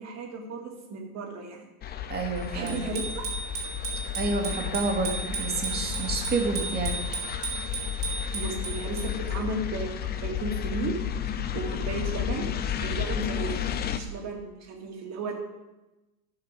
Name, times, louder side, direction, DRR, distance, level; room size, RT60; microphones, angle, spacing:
voice 1, 0.0-1.7 2.5-3.2 8.3-11.0 11.5-12.5 12.8-13.6 13.9-15.3, right 3 dB, 35° right, 1 dB, 2.2 m, -34 dB
sound 1, 1.8-14.0, left 9 dB, 20° left, 0.6 m, -32 dB
voice 2, 2.1-2.8 4.2-7.0, right 3 dB, 20° right, 2 dB, 2.0 m, -29 dB
Bicycle bell, 2.7-9.3, right 4 dB, 85° right, 3.2 m, -35 dB
13.5 x 5.8 x 5.0 m, 1.0 s
hypercardioid pair, 100°, 44 cm